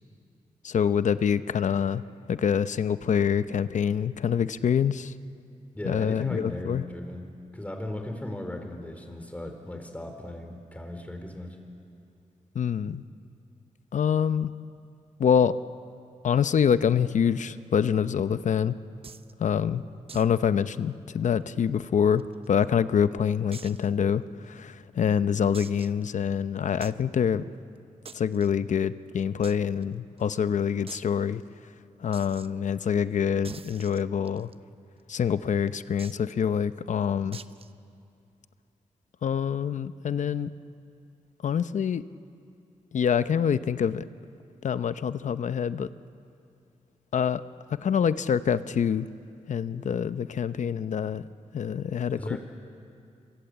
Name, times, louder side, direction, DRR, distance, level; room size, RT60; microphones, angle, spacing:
voice 1, 0.6-2.0 2.3-5.1 5.8-6.8 12.5-13.0 13.9-14.5 15.2-15.5 16.2-18.8 19.4-19.8 20.1-27.5 28.1-31.4 32.0-34.5 35.1-37.4 39.2-40.5 41.4-42.0 42.9-44.0 44.6-45.9 47.1-47.4 47.8-49.1 49.5-51.3 51.5-52.4, left 7 dB, 70° left, 13 dB, 0.8 m, -26 dB
voice 2, 5.7-11.6 52.2-52.4, left 1 dB, 10° left, 4 dB, 4.4 m, -37 dB
sound 1, 19.0-19.3 20.1-20.4 20.6-20.7 21.1-21.2 21.9-22.6 23.5-23.9 24.4-24.5 25.5-26.0 26.8-27.0 28.0-28.5 29.4-29.5 29.8-29.9 30.2-30.3 30.9-31.1 32.1-32.5 33.4-34.5 36.0-36.3 37.3-37.7, right 5 dB, 45° right, 0.8 m, -45 dB
26.5 x 26.0 x 8.2 m, 2.5 s
cardioid pair, 80°, 13 cm